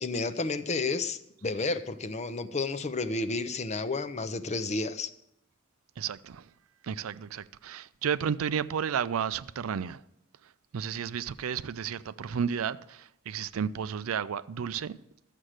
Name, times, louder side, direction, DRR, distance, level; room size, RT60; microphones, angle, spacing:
voice 1, 0.0-5.1, left 3 dB, 35° left, 0.6 m, -31 dB
voice 2, 6.0-6.4 6.8-10.0 10.7-15.0, right 7 dB, 85° right, 0.4 m, -32 dB
13.0 x 7.5 x 6.5 m
head